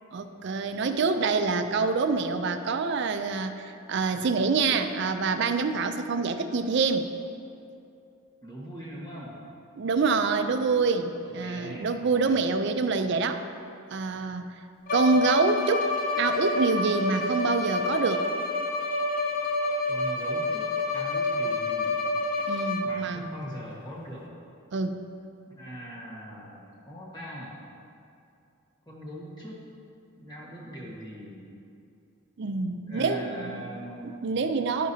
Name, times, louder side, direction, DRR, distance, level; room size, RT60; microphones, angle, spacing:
voice 1, 0.1-7.1 9.8-13.4 13.9-14.5 14.9-15.9 16.2-18.3 22.5-23.3 24.7-25.0 32.4-33.7 34.0-34.9, right 4 dB, 55° right, 8 dB, 0.4 m, -26 dB
voice 2, 8.4-9.4 11.2-12.4 19.8-22.0 22.8-24.3 25.5-27.6 28.8-29.6 30.2-31.5 32.9-34.2, equal, 20° left, -5 dB, 1.4 m, -41 dB
Bowed string instrument, 14.9-23.1, left 2 dB, 40° left, 0.5 m, -28 dB
10.5 x 6.3 x 2.8 m, 2.6 s
head